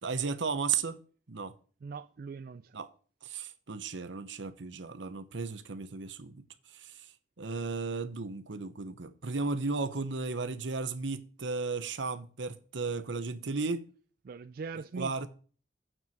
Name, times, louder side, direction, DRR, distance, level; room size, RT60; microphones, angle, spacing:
voice 1, 0.0-1.0 1.3-1.5 2.7-2.9 3.2-6.4 6.7-7.1 7.4-13.9 15.0-15.3, right 4 dB, 80° right, 0.9 m, -34 dB
voice 2, 1.8-2.8 14.2-15.3, right 4 dB, 50° right, 0.3 m, -41 dB
9.0 x 4.7 x 7.6 m
head